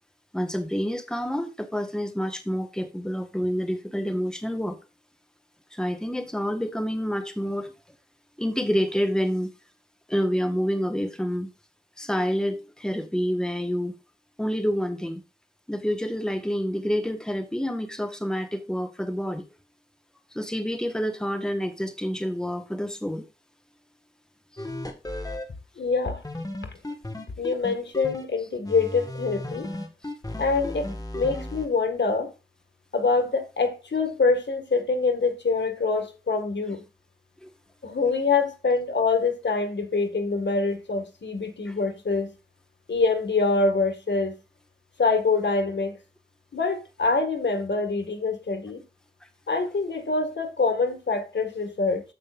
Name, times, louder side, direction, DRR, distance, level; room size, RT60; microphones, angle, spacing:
voice 1, 0.3-4.8 5.7-7.7 8.4-9.5 10.1-11.5 12.0-13.9 14.4-15.2 15.7-19.4 20.3-23.3 24.5-24.6 37.4-37.5 41.7-41.8, equal, 5° left, 1.2 m, -28 dB
sound 1, 24.6-25.4 26.2-28.2 28.6-31.7, left 1 dB, 20° left, 1.5 m, -34 dB
voice 2, 25.8-26.2 26.6-26.7 27.4-29.7 30.4-32.3 32.9-36.8 37.8-42.3 42.9-44.4 45.0-46.0 46.5-48.8 49.5-52.0, left 4 dB, 85° left, 1.7 m, -25 dB
14.5 x 5.2 x 2.4 m
wide cardioid pair, 65°, 18 cm